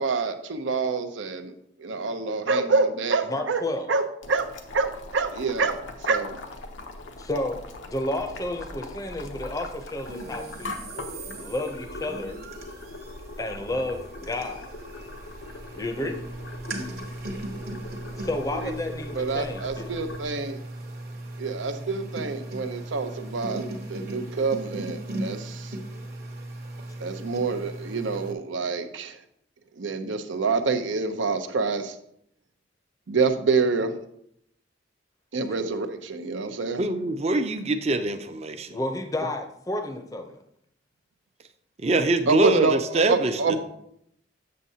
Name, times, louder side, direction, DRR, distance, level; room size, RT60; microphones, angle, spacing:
voice 1, 0.0-1.5 1.8-4.0 4.3-4.5 4.7-5.8 6.1-6.4 18.5-18.7 19.2-20.6 21.4-23.6 23.9-25.7 27.0-29.2 29.8-31.9 33.1-33.9 35.3-36.8 42.3-43.6, right 4 dB, 90° right, 7 dB, 0.6 m, -26 dB
voice 2, 3.2-3.9 7.2-10.8 11.4-12.4 13.4-14.7 15.7-16.2 18.2-19.9 38.7-40.4, left 1 dB, 20° left, 5 dB, 0.5 m, -31 dB
Boiling, 4.2-20.3, left 2 dB, 90° left, 0.8 m, -41 dB
sound 1, 10.0-28.3, right 1 dB, 55° right, 0.9 m, -38 dB
voice 3, 36.8-38.7 41.8-43.6, right 2 dB, 35° right, 9 dB, 0.5 m, -24 dB
7.6 x 6.4 x 2.8 m, 0.73 s
head